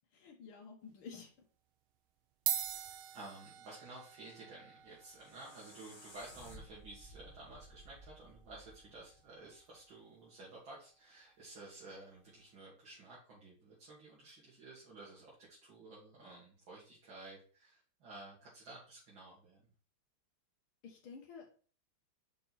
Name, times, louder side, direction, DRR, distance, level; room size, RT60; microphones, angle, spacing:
voice 1, 0.1-1.3 20.8-21.5, left 5 dB, 75° left, -1 dB, 2.1 m, -51 dB
sound 1, 0.8-1.1 1.9-2.0 2.3-11.0, right 10 dB, 90° right, 1.5 m, -45 dB
voice 2, 3.1-19.6, right 2 dB, 65° right, -7 dB, 2.8 m, -53 dB
sound 2, 4.8-9.9, equal, 25° left, 0.5 m, -57 dB
6.4 x 4.6 x 4.2 m, 0.42 s
omnidirectional pair, 2.3 m